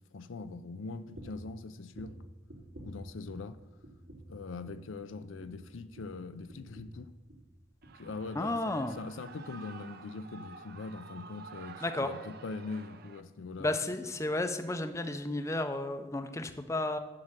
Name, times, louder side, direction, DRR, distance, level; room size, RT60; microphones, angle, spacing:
voice 1, 0.1-2.2 2.8-3.6 4.3-7.1 8.0-13.9, left 3 dB, 80° left, 0.5 m, -42 dB
sound 1, 1.1-1.5 1.9-3.6 3.8-4.4 4.6-4.9 5.2-7.5 7.8-8.3 8.6-8.8 9.2-9.3, right 1 dB, 85° right, 2.9 m, -51 dB
Shout / Cheering, 7.8-13.2, right 4 dB, 50° right, 0.6 m, -50 dB
voice 2, 8.4-8.9 11.8-12.1 13.6-17.0, left 2 dB, 15° left, 0.5 m, -32 dB
7.7 x 6.4 x 7.4 m
head